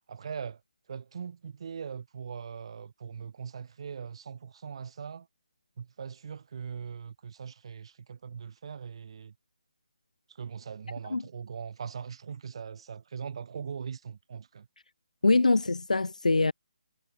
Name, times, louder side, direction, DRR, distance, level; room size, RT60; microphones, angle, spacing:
voice 1, 0.1-0.6 0.9-5.3 5.8-9.3 10.3-14.7, right 6 dB, 50° right, 5.8 m, -40 dB
voice 2, 15.2-16.5, left 3 dB, 90° left, 1.1 m, -23 dB
figure-of-eight pair, 160°, 4 cm